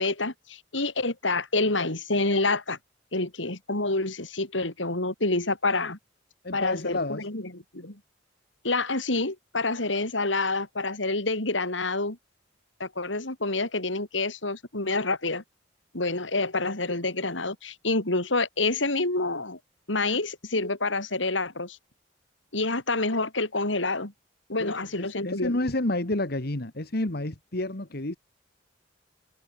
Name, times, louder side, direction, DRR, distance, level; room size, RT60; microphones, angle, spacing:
voice 1, 0.0-2.8 3.1-6.0 6.5-8.0 8.6-12.2 12.8-15.4 15.9-19.6 19.9-21.8 22.5-24.1 24.5-25.6, left 2 dB, 90° left, 4.9 m, -28 dB
voice 2, 6.4-7.3 24.6-28.2, left 1 dB, 55° left, 2.0 m, -30 dB
head